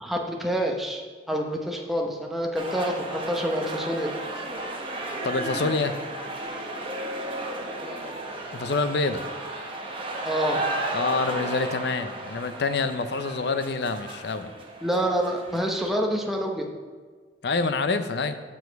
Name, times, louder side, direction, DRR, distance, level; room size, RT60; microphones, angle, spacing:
voice 1, 0.0-4.1 7.4-8.1 10.2-10.7 14.8-16.7, equal, ahead, 1 dB, 0.8 m, -28 dB
sound 1, 2.6-15.9, right 1 dB, 30° right, 0.9 m, -34 dB
voice 2, 5.2-6.0 8.5-9.2 10.9-14.5 17.4-18.3, left 3 dB, 65° left, 10 dB, 0.5 m, -26 dB
7.0 x 6.4 x 4.6 m, 1.5 s
head